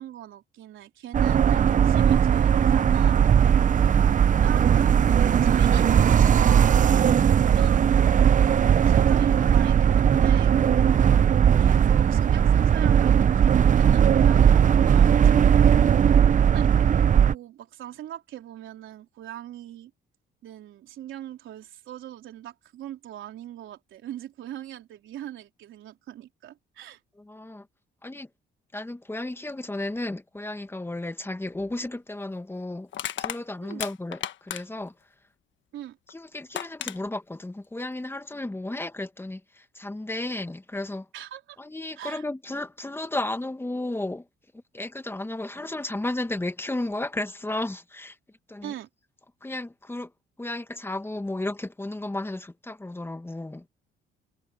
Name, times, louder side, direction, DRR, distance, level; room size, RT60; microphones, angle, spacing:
voice 1, 0.0-3.2 4.4-8.1 8.8-15.6 16.4-16.7 17.2-19.9 20.4-27.0 33.6-33.8 35.7-36.0 41.1-41.6 42.0-42.2 48.6-48.9, right 12 dB, 80° right, 3.8 m, -41 dB
sound 1, 1.1-17.3, right 8 dB, 40° right, 0.6 m, -18 dB
voice 2, 3.7-4.0 27.2-27.7 28.0-28.3 28.7-32.9 33.2-34.9 36.1-41.1 41.6-44.3 44.7-48.2 48.5-48.7 49.4-50.1 50.4-53.6, left 2 dB, 10° left, 1.5 m, -33 dB
Crushing, 31.5-31.7 32.9-34.9 36.1-36.2 36.5-37.0, left 11 dB, 70° left, 1.3 m, -34 dB
cardioid pair, 90°, 20 cm